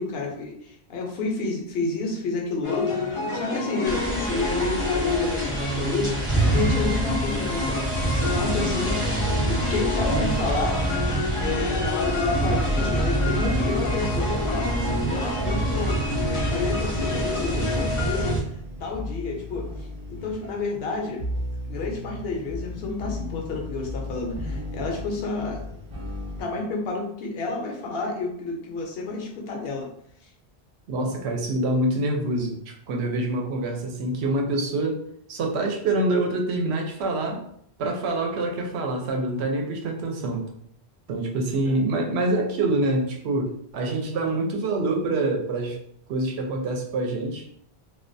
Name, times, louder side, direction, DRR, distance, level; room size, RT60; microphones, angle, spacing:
voice 1, 0.0-9.1 9.5-10.8 11.4-21.2 21.7-25.7 26.4-29.9 41.7-41.8, left 3 dB, 70° left, 0 dB, 0.8 m, -30 dB
sound 1, 2.6-18.3, left 3 dB, 55° left, 0.3 m, -29 dB
sound 2, 3.8-18.4, right 2 dB, 5° right, 0.5 m, -27 dB
sound 3, 8.4-26.4, left 1 dB, 55° right, 0.9 m, -36 dB
voice 2, 30.9-35.0 35.3-37.4 37.8-40.4 41.1-45.8 46.1-47.4, right 2 dB, 85° right, 2 dB, 0.8 m, -26 dB
2.3 x 2.2 x 2.5 m, 0.69 s
omnidirectional pair, 1.1 m